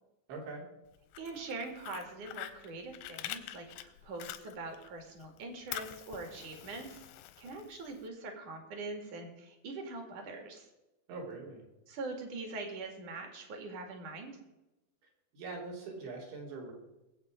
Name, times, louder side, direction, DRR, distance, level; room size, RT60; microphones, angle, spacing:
voice 1, 0.3-0.6 11.1-11.6 15.3-16.7, right 3 dB, 70° right, -1 dB, 5.1 m, -42 dB
Fire, 1.0-4.9 5.2-8.0, left 13 dB, 90° left, 3.2 m, -45 dB
voice 2, 1.2-7.0 7.4-10.7 11.9-14.4, right 3 dB, 50° right, 4 dB, 2.9 m, -43 dB
20.5 x 8.2 x 5.0 m, 0.99 s
omnidirectional pair, 5.4 m